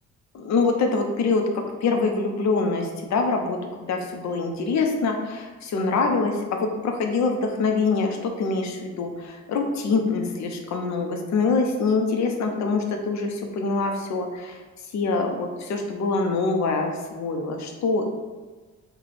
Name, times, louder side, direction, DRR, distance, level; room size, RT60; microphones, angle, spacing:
voice 1, 0.3-14.6 14.9-18.2, left 4 dB, 65° left, 3 dB, 0.7 m, -25 dB
3.9 x 2.3 x 3.4 m, 1.3 s
cardioid pair, 90°, 30 cm